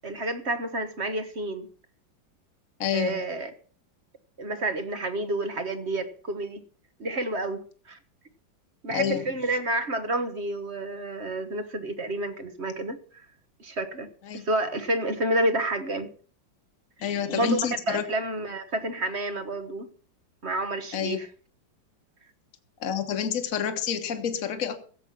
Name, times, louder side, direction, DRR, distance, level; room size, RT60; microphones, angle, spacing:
voice 1, 0.0-1.7 2.9-3.5 4.4-6.6 7.0-8.0 8.8-13.0 13.6-14.1 14.3-16.1 17.3-17.6 17.9-19.9 20.4-21.3, right 1 dB, 40° right, 1.4 m, -29 dB
voice 2, 2.8-3.2 8.9-9.2 14.3-14.4 17.0-18.0 20.9-21.2 22.8-24.8, left 8 dB, 45° left, 1.7 m, -28 dB
16.0 x 7.9 x 5.9 m
omnidirectional pair, 2.0 m